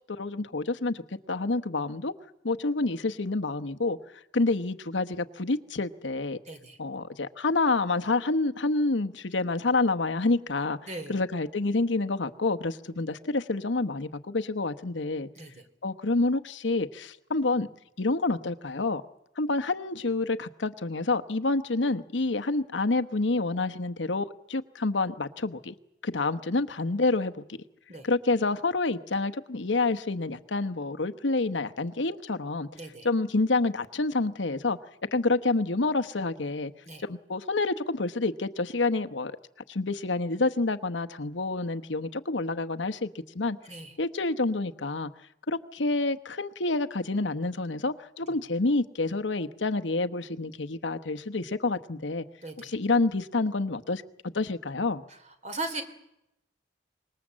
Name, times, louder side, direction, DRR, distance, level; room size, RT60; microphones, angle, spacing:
voice 1, 0.2-1.0 1.3-2.1 2.4-4.0 4.3-6.4 6.8-15.3 15.8-17.7 18.0-19.0 19.4-25.7 26.0-27.6 28.0-32.7 33.0-34.8 35.1-36.7 37.0-39.3 39.7-43.1 43.3-43.6 44.0-45.1 45.5-52.2 52.6-54.0 54.3-55.0, left 3 dB, 90° left, 8 dB, 1.1 m, -28 dB
voice 2, 6.5-6.8 10.9-11.2 15.4-15.6 27.9-28.1 32.7-33.1 36.9-37.0 43.7-43.9 52.4-52.7 55.4-55.8, right 2 dB, 40° right, 8 dB, 3.0 m, -38 dB
25.5 x 21.0 x 7.5 m, 0.83 s
head